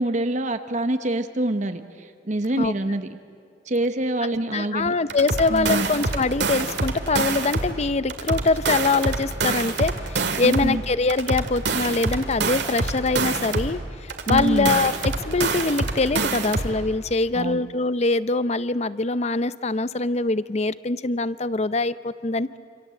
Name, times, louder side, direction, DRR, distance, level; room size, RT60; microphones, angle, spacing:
voice 1, 0.0-3.1 3.7-4.9 5.5-5.9 10.4-10.8 14.3-14.8 17.3-17.6, right 1 dB, 40° right, 8 dB, 1.0 m, -25 dB
voice 2, 4.5-22.6, left 3 dB, 35° left, 15 dB, 0.7 m, -23 dB
sound 1, 5.1-7.8 8.1-10.8 11.1-13.8 14.1-16.8, right 3 dB, 65° right, 2.2 m, -26 dB
27.0 x 27.0 x 7.8 m, 2.3 s
head